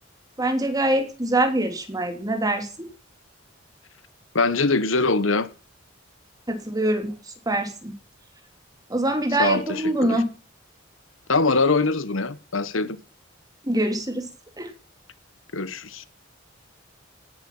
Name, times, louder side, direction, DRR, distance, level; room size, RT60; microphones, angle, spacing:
voice 1, 0.4-2.9 6.5-7.1 7.4-7.9 8.9-10.3 13.6-14.3 14.6-14.7, right 1 dB, 20° right, 3.3 m, -24 dB
voice 2, 4.3-5.5 9.4-10.2 11.3-13.0 15.5-16.1, left 3 dB, 75° left, 1.4 m, -23 dB
18.0 x 10.5 x 7.4 m
head